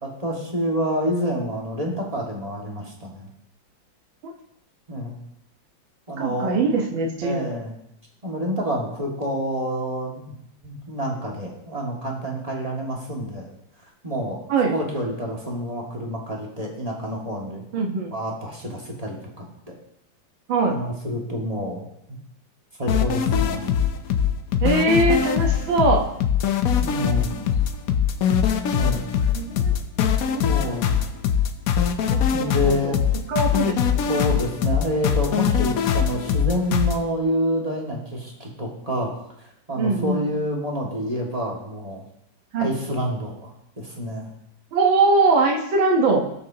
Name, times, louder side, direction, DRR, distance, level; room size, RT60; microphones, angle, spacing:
voice 1, 0.0-3.3 4.9-5.2 6.1-6.6 7.2-7.7 8.2-10.3 10.6-13.5 14.0-14.4 14.7-17.6 18.1-19.5 20.7-22.2 22.8-23.7 26.8-27.5 28.7-29.1 30.4-31.0 32.3-33.0 34.1-39.1 39.4-42.0 42.6-44.3, equal, 20° right, -2 dB, 2.0 m, -28 dB
voice 2, 6.2-7.5 14.5-14.8 17.7-18.1 20.5-20.8 24.6-26.1 29.3-29.8 30.3-30.7 32.1-32.9 33.3-33.8 39.8-40.2 42.5-42.7 44.7-46.3, right 3 dB, 80° right, 1 dB, 2.0 m, -21 dB
sound 1, 22.9-37.0, left 8 dB, 60° left, 0.9 m, -22 dB
19.0 x 6.9 x 2.9 m, 0.78 s
omnidirectional pair, 2.1 m